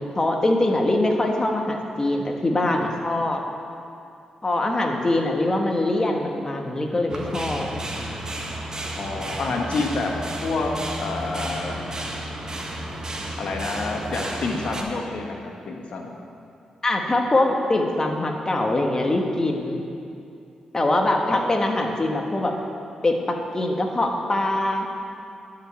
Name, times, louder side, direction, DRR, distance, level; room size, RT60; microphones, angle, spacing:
voice 1, 0.0-3.4 4.4-7.7 16.8-19.8 20.7-22.5 23.0-24.9, left 2 dB, 30° left, 2 dB, 1.4 m, -23 dB
sound 1, 7.1-14.8, right 1 dB, 30° right, 1.5 m, -32 dB
voice 2, 9.0-10.1 10.4-10.7 11.0-11.7 13.4-15.4 15.7-16.1 21.3-21.4, left 3 dB, 70° left, 1 dB, 1.3 m, -28 dB
11.0 x 5.2 x 8.1 m, 2.5 s
cardioid pair, 65°, 2 cm